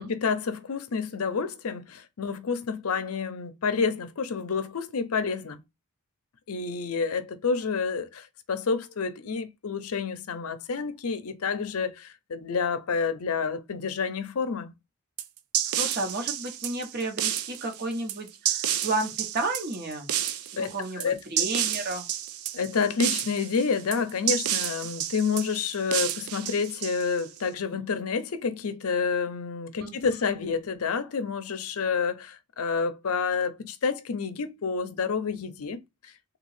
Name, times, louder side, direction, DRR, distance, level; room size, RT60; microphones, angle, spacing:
voice 1, 0.0-5.6 6.5-14.7 20.6-21.2 22.5-36.1, left 5 dB, 70° left, 0.5 m, -29 dB
sound 1, 15.2-27.4, right 11 dB, 70° right, 0.4 m, -30 dB
voice 2, 15.8-20.1 20.6-22.1 29.8-30.0, right 2 dB, 45° right, 0.9 m, -32 dB
3.5 x 2.3 x 3.1 m
head